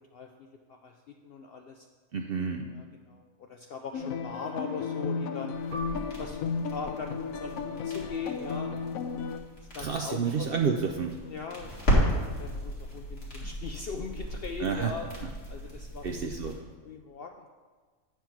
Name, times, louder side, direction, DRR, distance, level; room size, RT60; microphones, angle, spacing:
voice 1, 0.1-1.9 2.7-5.6 6.2-8.7 9.7-10.5 11.2-15.1 15.5-16.3 16.8-17.5, left 5 dB, 65° left, 3 dB, 0.6 m, -40 dB
voice 2, 2.1-2.7 9.8-11.2 14.6-14.9 16.0-16.6, right 6 dB, 60° right, 3 dB, 0.6 m, -29 dB
sound 1, 3.9-9.4, left 5 dB, 85° left, 1.0 m, -34 dB
sound 2, 5.5-16.5, equal, 45° left, 2.2 m, -34 dB
Piano, 5.7-10.8 11.1-11.3 12.0-12.4, right 2 dB, 80° right, 1.6 m, -48 dB
9.0 x 4.5 x 5.8 m, 1.5 s
omnidirectional pair, 1.5 m